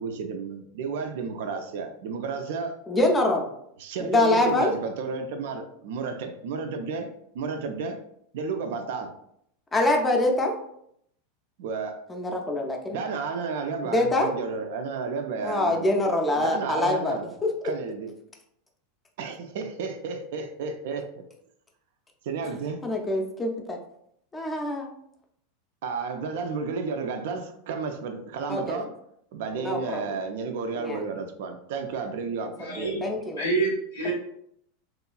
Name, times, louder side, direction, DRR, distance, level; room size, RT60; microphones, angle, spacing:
voice 1, 0.0-2.8 3.8-7.1 7.3-8.0 8.3-9.1 11.6-12.0 12.9-15.9 16.3-17.3 17.6-18.1 19.2-21.2 22.3-22.8 25.8-28.9 29.3-33.2, right 5 dB, 55° right, 6 dB, 0.3 m, -32 dB
voice 2, 2.9-3.5 4.0-4.7 9.7-10.5 12.1-13.0 13.8-14.3 15.4-17.5 22.8-23.8 24.3-24.9 28.5-28.8 29.5-30.2 30.7-31.0 32.8-33.4 34.0-34.1, left 2 dB, 15° left, 2 dB, 0.4 m, -25 dB
voice 3, 32.6-33.1 33.4-34.1, right 3 dB, 80° left, -2 dB, 0.5 m, -27 dB
2.9 x 2.3 x 2.2 m, 0.72 s
figure-of-eight pair, 85°, 0 cm